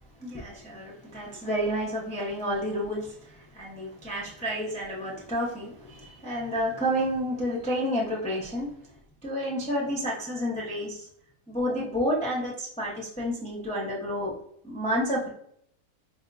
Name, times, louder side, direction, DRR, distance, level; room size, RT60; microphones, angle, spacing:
voice 1, 0.2-8.7 9.2-11.1 11.5-14.3 14.6-15.3, equal, 10° left, -4 dB, 0.4 m, -30 dB
4.7 x 2.8 x 2.5 m, 0.68 s
omnidirectional pair, 1.7 m